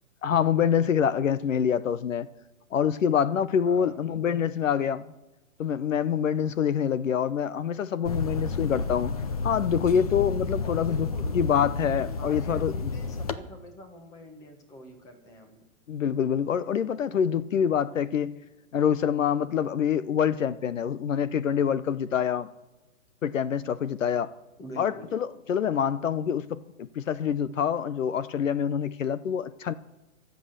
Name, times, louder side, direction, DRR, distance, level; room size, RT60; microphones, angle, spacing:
voice 1, 0.2-2.3 2.7-5.0 5.6-9.1 9.4-12.9 15.9-18.3 18.7-22.5 23.2-24.3 24.8-29.7, left 8 dB, 65° left, 0.8 m, -26 dB
voice 2, 3.7-4.0 10.6-11.4 12.2-15.6 24.6-25.1, equal, 10° left, 1.3 m, -45 dB
sound 1, 8.0-13.3, left 3 dB, 25° left, 0.6 m, -31 dB
23.5 x 8.0 x 6.6 m
hypercardioid pair, 165°, 42 cm